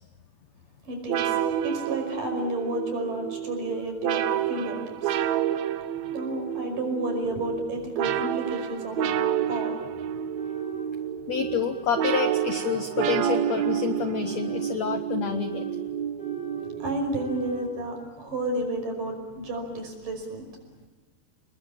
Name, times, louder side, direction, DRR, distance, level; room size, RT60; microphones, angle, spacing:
voice 1, 0.8-5.2 6.1-9.1 9.5-9.8 16.8-20.5, right 1 dB, 50° right, 4 dB, 7.0 m, -31 dB
sound 1, 1.1-17.3, right 10 dB, 80° right, 1.6 m, -29 dB
sound 2, 6.2-6.3 7.2-7.3 8.2-8.9 9.4-9.9 10.3-10.9 11.3-11.9 12.3-12.8 13.3-13.8 14.2-14.8 15.2-15.7 16.2-16.7 17.2-17.7, right 5 dB, 15° left, 2.2 m, -41 dB
voice 2, 11.3-15.7, left 7 dB, 85° left, 8 dB, 1.5 m, -28 dB
29.5 x 21.0 x 8.7 m, 1.2 s
omnidirectional pair, 4.8 m